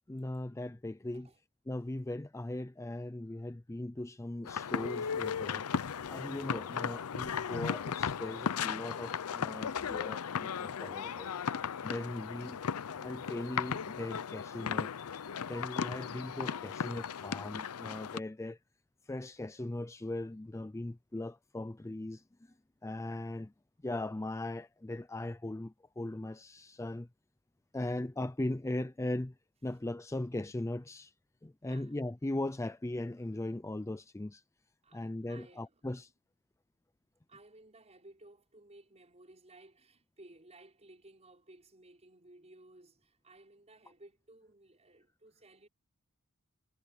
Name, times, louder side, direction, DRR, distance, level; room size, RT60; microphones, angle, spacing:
voice 1, 0.1-1.3 1.7-5.7 6.1-11.3 11.8-12.6 13.0-14.9 15.5-18.6 19.1-22.5 22.8-23.5 23.8-27.1 27.7-29.3 29.6-31.1 31.4-34.4 34.9-36.1, left 1 dB, 15° left, 0.5 m, -39 dB
sound 1, 4.5-18.2, left 7 dB, 75° left, 0.6 m, -36 dB
voice 2, 9.5-10.1 11.0-11.2 11.9-12.4 12.8-12.9 31.7-31.9 34.8-35.9 37.3-45.7, right 2 dB, 30° right, 5.7 m, -58 dB
head